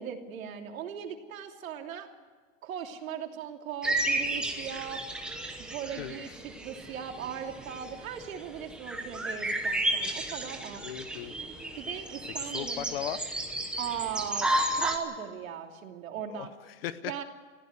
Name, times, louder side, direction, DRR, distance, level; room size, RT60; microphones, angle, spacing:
voice 1, 0.0-2.1 2.6-5.0 5.6-11.0 11.8-12.9 13.8-16.5 17.0-17.2, right 8 dB, 85° right, 4 dB, 3.0 m, -39 dB
sound 1, 3.8-15.0, right 1 dB, ahead, 1.0 m, -33 dB
voice 2, 6.0-6.4 10.8-11.3 12.4-13.2 16.3-17.1, left 11 dB, 45° left, 14 dB, 0.8 m, -38 dB
21.0 x 15.5 x 8.2 m, 1.5 s
supercardioid pair, 180°, 40 cm